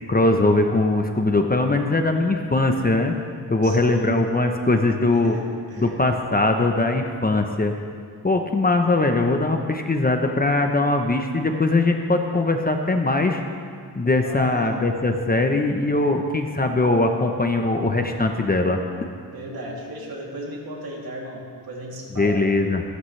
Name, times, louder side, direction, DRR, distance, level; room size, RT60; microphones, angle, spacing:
voice 1, 0.1-3.1 3.5-5.3 5.8-7.7 8.2-13.4 14.0-18.8 22.2-22.8, left 2 dB, 20° left, 4 dB, 0.9 m, -21 dB
voice 2, 3.6-4.2 5.1-5.4 5.7-5.9 14.2-14.7 19.3-22.5, right 1 dB, 55° right, -3 dB, 3.0 m, -35 dB
16.5 x 13.0 x 3.3 m, 2.1 s
cardioid pair, 95°, 42 cm